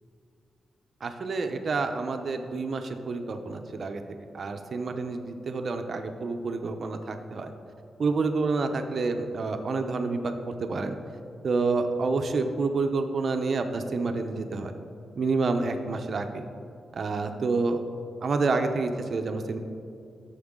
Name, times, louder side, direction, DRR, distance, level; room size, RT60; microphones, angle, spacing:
voice 1, 1.0-4.0 4.3-7.5 8.0-11.0 11.4-14.7 15.2-16.5 16.9-17.8 18.2-19.6, right 3 dB, 45° right, 6 dB, 0.7 m, -28 dB
13.0 x 7.1 x 3.7 m, 2.5 s
wide cardioid pair, 140°, 0 cm